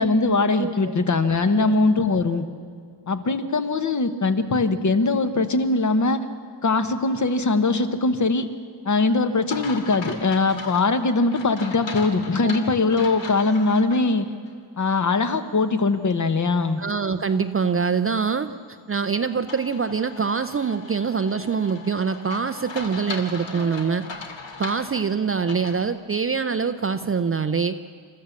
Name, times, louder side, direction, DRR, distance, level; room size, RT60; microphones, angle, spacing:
voice 1, 0.0-2.4 3.1-6.2 6.6-8.5 8.8-14.3 14.8-16.8, left 3 dB, 35° left, 9 dB, 1.2 m, -21 dB
voice 2, 0.6-0.9 1.5-1.7 12.4-12.5 16.8-18.5 18.9-24.0 24.6-27.8, right 5 dB, 30° right, 9 dB, 0.5 m, -24 dB
sound 1, 9.5-14.0 14.5-14.6 19.5-25.8, left 4 dB, 65° left, 2.4 m, -38 dB
28.0 x 14.5 x 7.2 m, 2.1 s
wide cardioid pair, 160°, 48 cm